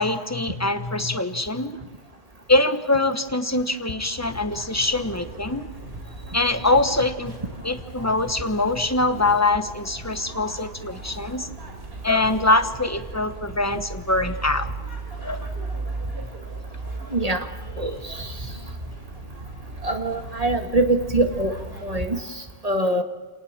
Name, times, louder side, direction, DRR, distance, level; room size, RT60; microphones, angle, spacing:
voice 1, 0.0-1.8 2.5-5.7 6.3-7.4 7.6-11.5 12.0-14.7 15.2-15.4, left 2 dB, 15° left, 9 dB, 1.2 m, -23 dB
sound 1, 4.2-22.2, right 2 dB, 65° right, 3.6 m, -37 dB
voice 2, 17.1-17.5 17.8-18.5 19.8-23.0, right 2 dB, 35° right, 5 dB, 1.9 m, -24 dB
29.0 x 19.0 x 7.4 m, 1.3 s
omnidirectional pair, 1.1 m